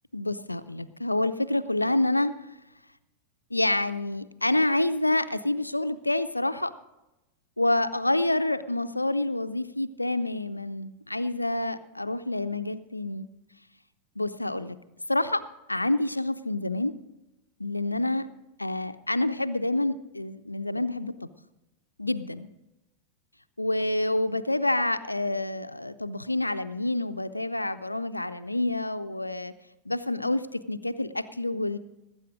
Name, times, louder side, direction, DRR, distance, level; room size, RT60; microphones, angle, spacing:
voice 1, 0.1-2.3 3.5-6.7 7.6-13.3 14.2-14.8 15.1-16.9 17.6-18.3 18.6-21.1 22.0-22.5 23.6-29.5 29.9-31.8, left 1 dB, 85° left, 12 dB, 0.5 m, -28 dB
19.0 x 8.4 x 5.0 m, 0.96 s
figure-of-eight pair, 90°, 0 cm